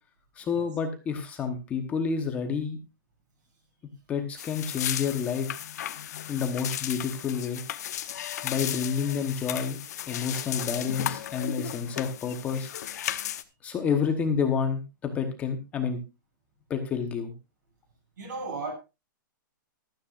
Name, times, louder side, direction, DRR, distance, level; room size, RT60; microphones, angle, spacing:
voice 1, 0.4-2.8 4.1-5.6 6.3-7.6 8.4-9.8 10.1-12.7 13.6-16.0 16.7-17.3, left 6 dB, 10° left, 1.0 m, -29 dB
sound 1, 4.4-13.4, left 11 dB, 50° left, 0.9 m, -35 dB
voice 2, 18.2-18.7, right 3 dB, 65° right, 7.2 m, -35 dB
15.0 x 13.0 x 2.5 m
hypercardioid pair, 175°, 11 cm